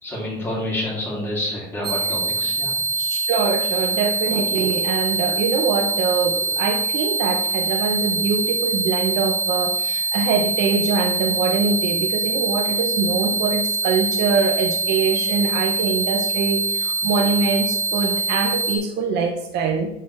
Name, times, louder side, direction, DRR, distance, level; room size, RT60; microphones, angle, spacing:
voice 1, 0.0-2.8, left 1 dB, 10° left, -5 dB, 2.5 m, -28 dB
sound 1, 1.8-18.8, right 3 dB, 25° right, 0.9 m, -24 dB
voice 2, 3.0-19.9, right 5 dB, 55° right, 4 dB, 0.8 m, -23 dB
10.5 x 3.9 x 3.2 m, 0.81 s
cardioid pair, 155°, 20 cm